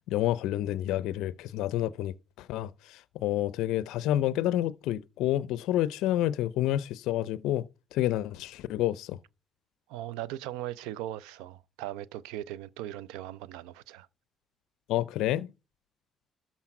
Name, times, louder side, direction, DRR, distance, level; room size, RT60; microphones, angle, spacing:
voice 1, 0.1-7.6 7.9-9.2 14.9-15.5, left 13 dB, 75° left, 0.4 m, -29 dB
voice 2, 9.9-14.1, right 13 dB, 80° right, 0.4 m, -39 dB
12.5 x 4.3 x 5.8 m
hypercardioid pair, 50°, 0 cm